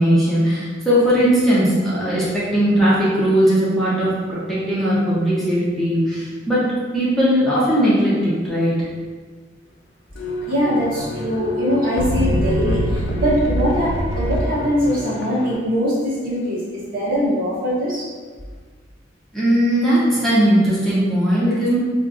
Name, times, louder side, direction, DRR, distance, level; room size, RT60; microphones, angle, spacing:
voice 1, 0.0-8.9 19.3-21.8, equal, ahead, -10 dB, 0.7 m, -18 dB
sound 1, 10.2-15.6, equal, 75° left, 0.5 m, -24 dB
voice 2, 10.4-18.0, equal, 50° right, -8 dB, 1.3 m, -22 dB
5.0 x 2.4 x 2.5 m, 1.5 s
head